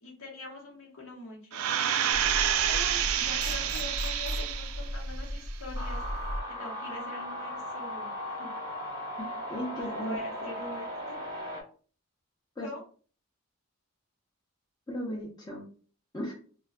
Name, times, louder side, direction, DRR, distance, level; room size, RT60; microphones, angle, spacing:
voice 1, 0.0-1.8 2.7-8.5 9.8-11.2 12.6-12.8, left 2 dB, 70° left, -1 dB, 0.9 m, -44 dB
sound 1, 1.5-4.9 5.4-5.5, right 10 dB, 75° right, 0.3 m, -28 dB
sound 2, 2.1-6.4, equal, 90° left, 0.6 m, -36 dB
sound 3, 5.7-11.6, equal, 20° right, 0.8 m, -37 dB
voice 2, 9.2-10.2 12.6-12.7 14.9-15.6 16.1-16.3, equal, 20° left, -5 dB, 0.6 m, -36 dB
2.2 x 2.1 x 3.6 m, 0.41 s
head